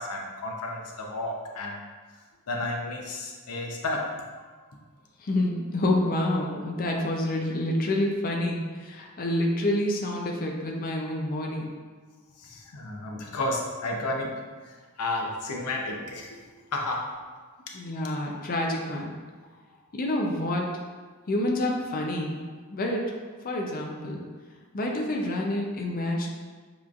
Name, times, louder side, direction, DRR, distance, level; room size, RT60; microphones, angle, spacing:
voice 1, 0.0-1.8 2.5-4.1 12.4-14.4 14.7-16.4 16.7-17.1 17.7-17.8, left 2 dB, 90° left, 1 dB, 0.7 m, -32 dB
voice 2, 5.2-11.7 17.7-19.1 19.9-20.7 21.3-22.4 22.7-23.0 23.4-24.2 24.7-26.3, left 1 dB, 40° left, 0 dB, 0.5 m, -28 dB
7.1 x 3.1 x 2.4 m, 1.4 s
head